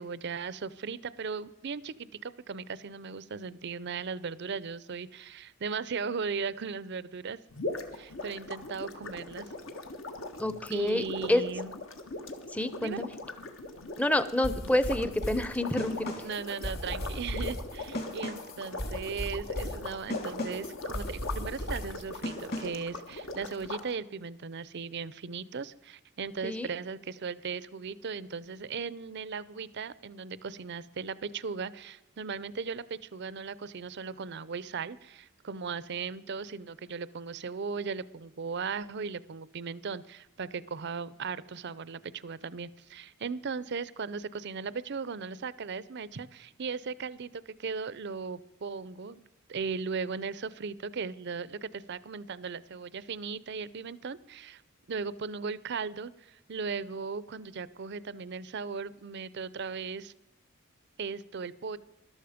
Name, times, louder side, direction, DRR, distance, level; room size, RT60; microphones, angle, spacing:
voice 1, 0.0-7.4 7.9-9.5 10.7-11.7 12.8-13.0 16.2-54.6 54.9-60.1 61.0-61.8, right 5 dB, 55° right, 18 dB, 0.6 m, -37 dB
sound 1, 7.5-23.8, left 2 dB, 65° left, 1.5 m, -40 dB
voice 2, 10.4-11.4 12.5-13.1 14.0-16.1 26.4-26.7, left 1 dB, 5° left, 13 dB, 0.7 m, -28 dB
sound 2, 14.4-22.9, equal, 50° left, 3.3 m, -37 dB
14.0 x 12.0 x 5.1 m, 0.93 s
head